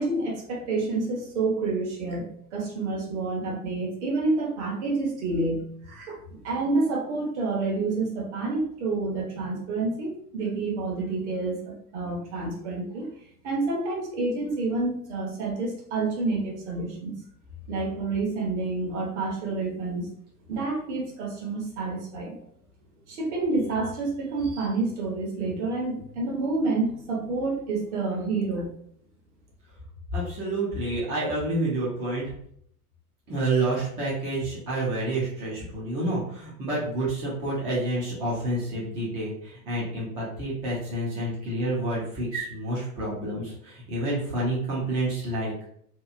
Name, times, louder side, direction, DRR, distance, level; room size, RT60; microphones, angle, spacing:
voice 1, 0.0-2.3 2.5-13.1 13.4-17.1 17.7-20.1 20.5-22.4 23.1-28.7, right 3 dB, 45° right, -1 dB, 1.0 m, -28 dB
voice 2, 30.1-32.3 33.3-45.7, right 1 dB, 15° right, -7 dB, 0.4 m, -29 dB
2.8 x 2.3 x 2.4 m, 0.66 s
figure-of-eight pair, 95°, 46 cm